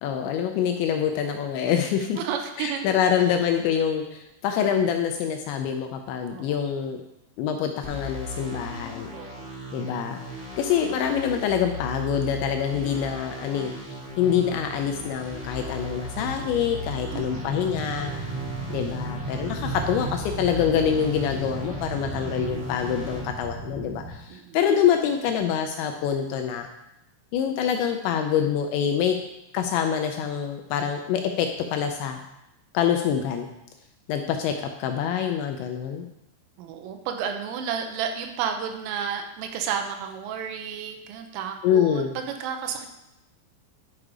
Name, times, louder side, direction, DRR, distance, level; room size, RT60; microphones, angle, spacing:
voice 1, 0.0-2.2 2.6-7.0 7.4-9.1 9.7-10.2 10.6-18.1 18.7-26.7 27.3-29.2 29.5-32.2 32.7-33.5 34.1-34.5 34.8-36.1 41.6-42.2, left 8 dB, 80° left, 5 dB, 2.7 m, -25 dB
voice 2, 2.2-2.9 6.2-6.6 9.1-9.5 12.7-13.1 17.1-17.7 22.1-22.6 24.3-24.6 36.6-42.9, right 7 dB, 85° right, 5 dB, 3.5 m, -32 dB
sound 1, 7.8-23.2, equal, 5° right, 1.0 m, -37 dB
sound 2, 13.7-24.1, right 2 dB, 40° right, 5.7 m, -36 dB
11.0 x 6.5 x 4.9 m, 0.90 s
omnidirectional pair, 5.7 m